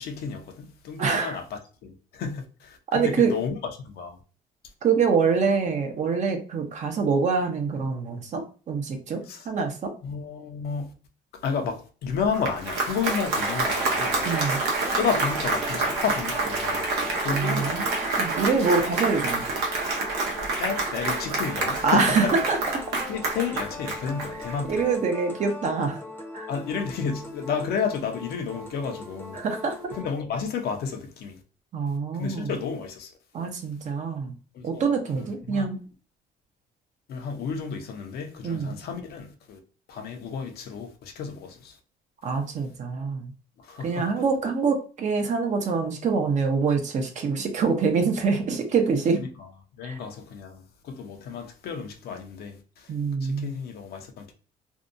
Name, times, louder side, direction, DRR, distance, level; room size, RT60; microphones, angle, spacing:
voice 1, 0.0-3.6 3.8-4.2 9.3-9.5 10.0-10.9 11.4-14.2 14.9-16.9 17.2-18.3 20.6-22.3 23.1-24.9 26.5-29.4 29.9-31.4 32.1-33.1 34.5-35.7 37.1-39.6 39.9-41.8 43.6-44.1 49.2-49.3 49.8-52.9 53.2-54.3, left 6 dB, 70° left, 0.7 m, -32 dB
voice 2, 1.0-1.4 2.9-3.3 4.8-9.9 14.2-14.6 17.3-17.9 18.1-19.4 19.7-20.3 21.8-22.6 24.4-26.0 26.3-26.5 29.3-29.7 31.7-32.6 33.3-34.3 34.6-35.8 38.4-38.8 42.2-43.3 43.8-49.2 49.8-50.0 52.9-53.6, right 5 dB, 45° right, 0.7 m, -25 dB
Applause, 12.2-24.7, right 3 dB, 80° right, 0.8 m, -28 dB
sound 1, 13.1-30.1, left 2 dB, 10° left, 0.7 m, -40 dB
2.7 x 2.2 x 2.5 m
cardioid pair, 110°, 17 cm